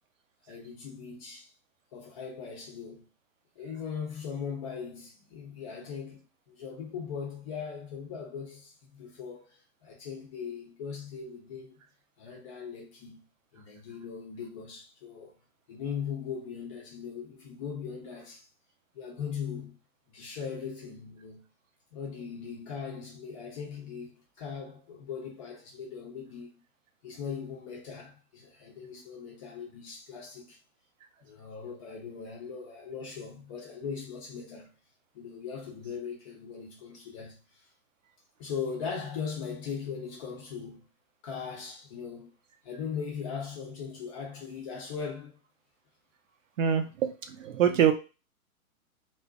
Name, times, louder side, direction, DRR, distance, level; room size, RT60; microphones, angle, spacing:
voice 1, 0.5-1.5 1.9-3.1 3.6-6.2 6.5-11.8 12.2-13.2 13.5-15.3 15.7-18.5 18.9-19.8 20.1-21.4 21.9-26.6 27.0-30.6 31.2-34.7 35.1-37.7 38.4-40.9 41.2-42.3 42.6-45.4, left 6 dB, 25° left, 0.5 m, -39 dB
voice 2, 46.6-47.9, right 9 dB, 60° right, 0.6 m, -25 dB
2.5 x 2.1 x 2.4 m
figure-of-eight pair, 120°, 44 cm